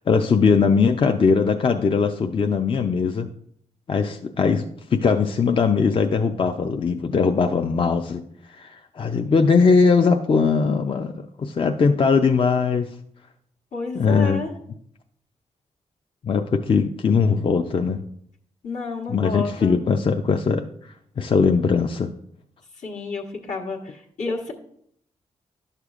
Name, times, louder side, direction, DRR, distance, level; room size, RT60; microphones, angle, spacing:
voice 1, 0.1-3.3 3.9-4.7 4.9-8.2 8.5-12.9 13.9-14.4 16.2-18.0 19.1-22.1, left 5 dB, 45° left, 5 dB, 0.4 m, -20 dB
voice 2, 13.7-14.5 18.6-19.8 22.8-24.5, left 4 dB, 70° left, 0 dB, 1.3 m, -30 dB
10.5 x 6.6 x 2.4 m, 0.68 s
cardioid pair, 70°, 13 cm